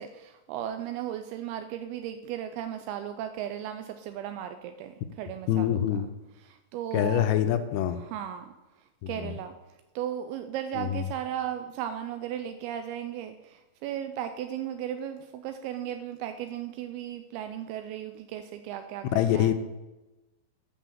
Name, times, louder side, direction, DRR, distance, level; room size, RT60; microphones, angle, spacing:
voice 1, 0.0-6.0 6.4-7.3 7.9-8.5 9.1-9.5 10.0-19.5, right 10 dB, 85° right, 8 dB, 2.2 m, -36 dB
voice 2, 5.5-6.1 6.9-8.0 9.0-9.3 10.8-11.0 19.1-19.5, left 11 dB, 80° left, 9 dB, 2.3 m, -25 dB
8.3 x 6.2 x 7.4 m, 1.1 s
omnidirectional pair, 5.0 m